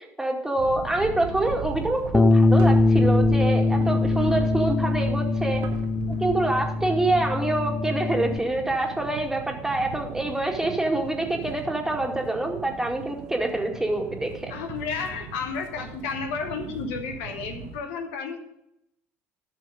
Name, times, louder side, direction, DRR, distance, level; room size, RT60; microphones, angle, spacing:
voice 1, 0.2-5.6 6.2-14.5, right 2 dB, 5° right, 2 dB, 2.2 m, -26 dB
sound 1, 0.6-17.8, right 5 dB, 60° right, 1.3 m, -38 dB
Bass guitar, 2.1-8.4, left 3 dB, 15° left, 0.6 m, -22 dB
voice 2, 14.5-18.4, left 5 dB, 70° left, 5 dB, 1.3 m, -32 dB
12.5 x 6.2 x 5.2 m, 0.83 s
figure-of-eight pair, 65°, 8 cm